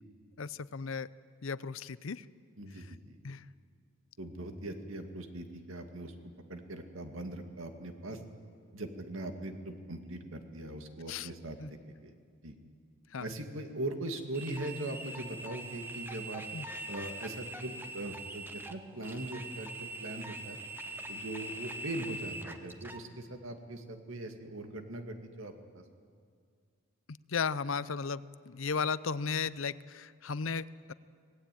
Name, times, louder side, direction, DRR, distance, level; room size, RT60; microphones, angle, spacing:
voice 1, 0.4-1.1 1.4-2.3 2.7-2.9 3.2-3.4 11.1-11.3 11.6-11.7 13.1-13.3 16.5-16.7 27.1-30.9, left 5 dB, 75° left, 17 dB, 0.6 m, -35 dB
voice 2, 2.6-3.2 4.2-6.1 6.5-8.2 8.7-12.1 12.4-12.5 13.2-16.4 16.9-20.6 21.1-25.8, right 1 dB, 80° right, 5 dB, 2.3 m, -41 dB
sound 1, 14.3-23.0, right 2 dB, 10° right, 1.1 m, -43 dB
25.0 x 19.0 x 9.3 m, 2.1 s
head